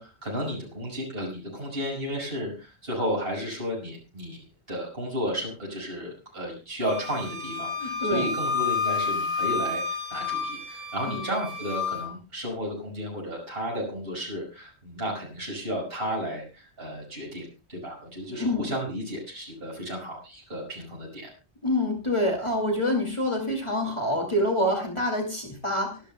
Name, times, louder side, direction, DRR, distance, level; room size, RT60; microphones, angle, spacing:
voice 1, 0.0-4.4 4.7-17.4 17.7-21.2, equal, 55° right, -3 dB, 6.1 m, -33 dB
Wind instrument woodwind instrument, 6.9-12.1, left 5 dB, 40° right, 2.3 m, -30 dB
voice 2, 7.8-8.3 11.1-11.3 18.3-18.7 21.6-26.0, left 1 dB, 25° left, 1 dB, 2.5 m, -26 dB
25.0 x 12.0 x 2.3 m, 0.32 s
omnidirectional pair, 1.2 m